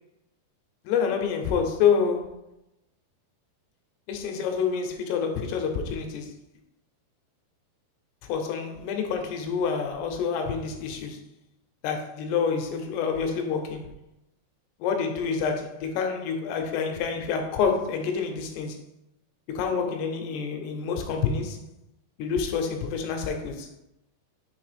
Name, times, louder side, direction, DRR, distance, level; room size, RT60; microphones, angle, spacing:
voice 1, 0.8-2.4 4.1-6.3 8.2-11.2 11.8-13.9 14.8-18.8 19.5-21.6 22.2-23.8, left 6 dB, 80° left, 2.7 m, -27 dB
6.5 x 3.4 x 4.9 m
omnidirectional pair, 4.9 m